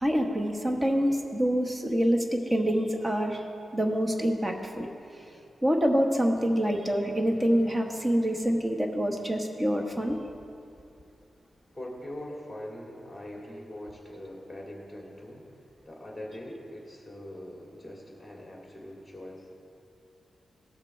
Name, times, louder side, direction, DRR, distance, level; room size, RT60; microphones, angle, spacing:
voice 1, 0.0-3.4 3.7-4.9 5.6-10.2, equal, 20° right, 3 dB, 1.2 m, -26 dB
voice 2, 11.7-19.5, left 1 dB, 10° left, -2 dB, 2.6 m, -42 dB
17.5 x 6.0 x 4.4 m, 2.6 s
cardioid pair, 95°, 0 cm